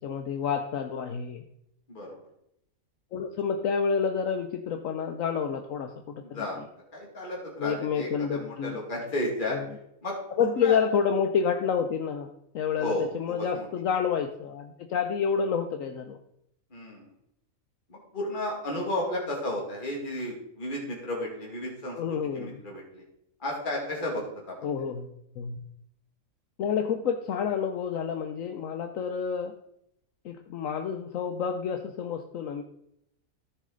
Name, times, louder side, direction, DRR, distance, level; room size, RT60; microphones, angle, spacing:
voice 1, 0.0-1.4 3.1-6.7 7.6-8.8 9.5-9.8 10.4-12.3 12.5-16.2 21.9-22.6 24.6-25.6 26.6-29.5 30.2-32.6, left 6 dB, 70° left, 5 dB, 1.1 m, -29 dB
voice 2, 6.3-6.7 6.9-9.6 10.0-10.8 12.8-13.7 16.7-17.1 17.9-23.0 23.4-24.7, left 1 dB, 35° left, -3 dB, 2.4 m, -33 dB
14.0 x 6.6 x 3.9 m, 0.76 s
omnidirectional pair, 1.5 m